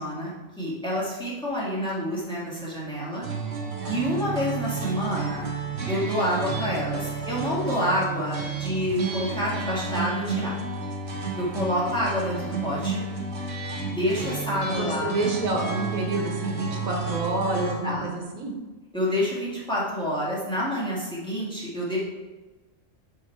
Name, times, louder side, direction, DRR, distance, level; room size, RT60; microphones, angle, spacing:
voice 1, 0.0-3.2 3.8-5.5 5.9-10.6 11.4-13.0 13.9-15.1 17.5-18.1 18.9-22.0, equal, 5° left, -7 dB, 2.2 m, -28 dB
sound 1, 3.2-17.8, right 4 dB, 55° right, 1.3 m, -31 dB
voice 2, 14.6-18.5, right 2 dB, 80° right, 2 dB, 1.5 m, -28 dB
6.5 x 5.0 x 4.6 m, 1.2 s
omnidirectional pair, 1.4 m